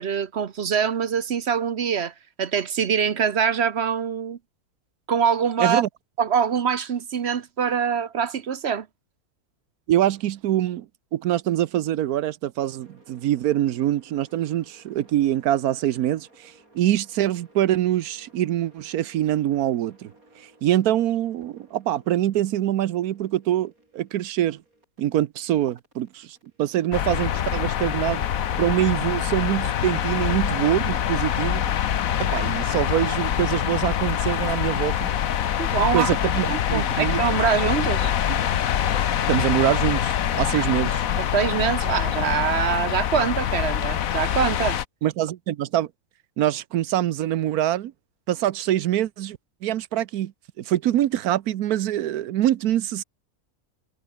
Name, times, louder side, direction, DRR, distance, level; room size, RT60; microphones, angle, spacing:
voice 1, 0.0-2.1 2.4-4.4 5.1-5.8 6.2-8.9 35.6-36.2 36.5-38.1 41.2-44.8, right 7 dB, 50° right, 1.0 m, -24 dB
voice 2, 5.6-5.9 9.9-10.9 11.1-16.3 16.7-20.1 20.6-24.6 25.0-26.3 26.6-28.3 28.6-31.7 32.2-35.1 35.9-37.2 38.3-38.4 39.2-41.0 45.0-45.9 46.4-47.9 48.3-50.3 50.6-53.0, right 12 dB, 85° right, 1.3 m, -24 dB
sound 1, 12.6-25.0 25.6-27.7, right 1 dB, 70° right, 8.4 m, -57 dB
sound 2, 26.9-44.8, left 9 dB, 70° left, 1.4 m, -25 dB
omnidirectional pair, 1.5 m